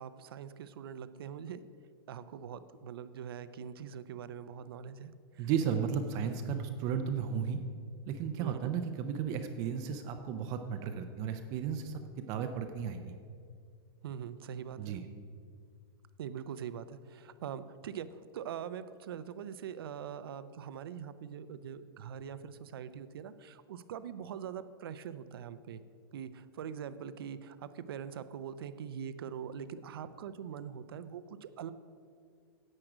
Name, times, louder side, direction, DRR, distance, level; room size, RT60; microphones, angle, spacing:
voice 1, 0.0-1.6 2.1-5.5 8.4-8.7 14.0-15.0 16.2-25.8 26.1-31.7, right 8 dB, 75° right, 13 dB, 0.6 m, -43 dB
voice 2, 5.4-7.6 8.0-12.0 12.3-13.2 14.8-15.1, right 7 dB, 30° right, 7 dB, 0.5 m, -34 dB
10.5 x 7.7 x 5.0 m, 2.2 s
supercardioid pair, 165°, 13 cm